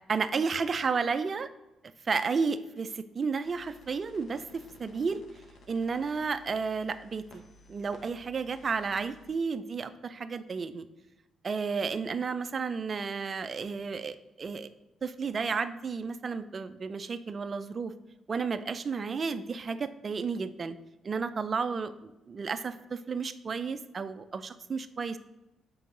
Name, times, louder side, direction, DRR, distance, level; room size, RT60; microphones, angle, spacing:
voice 1, 0.1-1.5 2.0-5.2 5.7-7.4 7.7-10.9 11.4-14.7 15.0-17.9 18.3-20.8 21.0-25.2, right 5 dB, 40° right, 11 dB, 0.4 m, -32 dB
Compact Camera, 3.4-9.4, left 1 dB, 55° left, 1.1 m, -56 dB
6.9 x 4.5 x 3.8 m, 0.98 s
cardioid pair, 90°, 0 cm